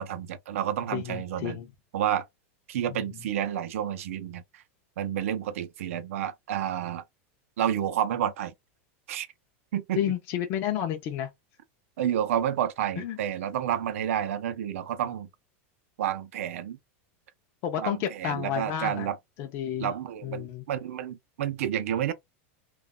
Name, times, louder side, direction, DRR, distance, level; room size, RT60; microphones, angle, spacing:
voice 1, 0.0-1.6 1.9-2.3 2.7-4.6 5.0-7.0 7.6-8.5 9.1-9.3 9.7-10.0 12.0-15.3 16.0-16.8 17.8-19.2 19.8-22.1, right 10 dB, 90° right, 0.5 m, -30 dB
voice 2, 0.9-1.7 2.8-3.1 10.0-11.3 13.0-13.2 17.6-19.1 19.4-19.9 20.2-20.6, left 10 dB, 35° left, 0.4 m, -31 dB
2.3 x 2.1 x 3.6 m
supercardioid pair, 170°, 7 cm